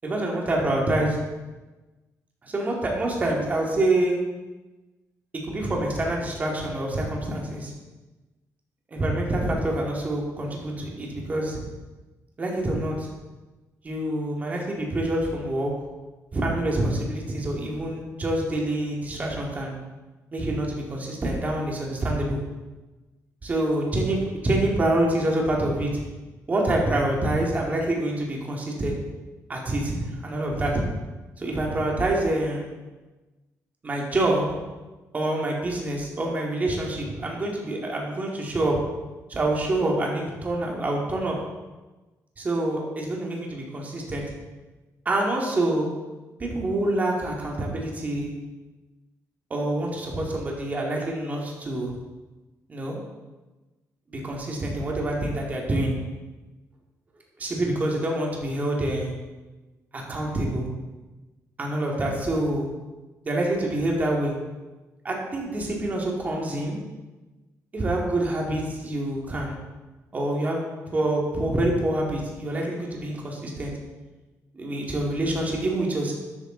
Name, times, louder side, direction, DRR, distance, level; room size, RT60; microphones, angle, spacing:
voice 1, 0.0-1.2 2.4-4.2 5.5-7.7 8.9-11.6 12.4-13.1 13.8-15.7 16.3-19.7 20.3-22.4 23.4-26.0 26.5-29.0 29.5-30.0 30.2-30.8 31.4-32.7 33.8-34.5 35.1-38.8 39.3-41.4 42.4-44.3 45.1-45.9 46.4-48.3 49.5-51.9 52.7-53.0 54.1-56.0 57.4-59.1 59.9-60.6 61.6-62.7 63.2-64.3 65.0-66.8 67.7-69.6 70.1-73.7 74.5-76.1, right 1 dB, 25° right, -1 dB, 2.2 m, -26 dB
12.5 x 8.7 x 3.9 m, 1.2 s
cardioid pair, 160°, 6 cm